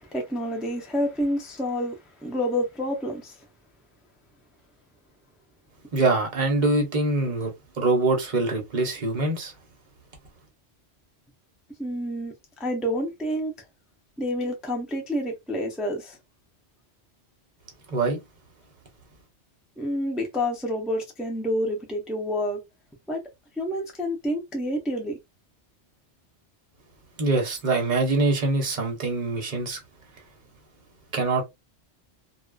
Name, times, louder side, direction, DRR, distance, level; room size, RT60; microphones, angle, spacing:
voice 1, 0.0-3.4 11.8-12.3 12.6-13.5 14.2-16.2 19.8-22.6 23.1-23.2 23.6-25.2, equal, ahead, 0.4 m, -28 dB
voice 2, 5.9-7.5 7.8-9.5 17.9-18.2 27.2-29.8 31.1-31.4, right 2 dB, 45° right, 0.9 m, -24 dB
2.3 x 2.3 x 2.3 m
omnidirectional pair, 1.2 m